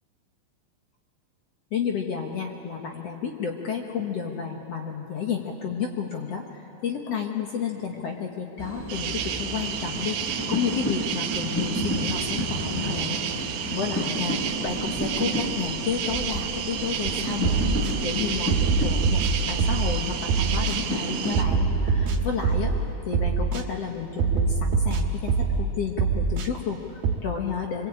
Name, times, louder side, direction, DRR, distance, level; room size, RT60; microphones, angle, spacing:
voice 1, 1.7-6.4 6.8-10.2 10.5-13.2 13.7-14.4 14.6-22.7 23.0-27.9, left 7 dB, 65° left, 2 dB, 1.6 m, -31 dB
sound 1, 8.6-22.9, equal, 5° left, 3.7 m, -32 dB
sound 2, 8.9-21.4, right 9 dB, 85° right, 3.3 m, -31 dB
sound 3, 17.0-17.1 17.4-17.9 18.5-20.0 20.3-20.8 21.3-22.8 23.1-23.6 24.2-25.7 26.0-26.5 27.0-27.2, right 5 dB, 65° right, 3.3 m, -24 dB
26.0 x 22.5 x 8.7 m, 2.7 s
omnidirectional pair, 4.9 m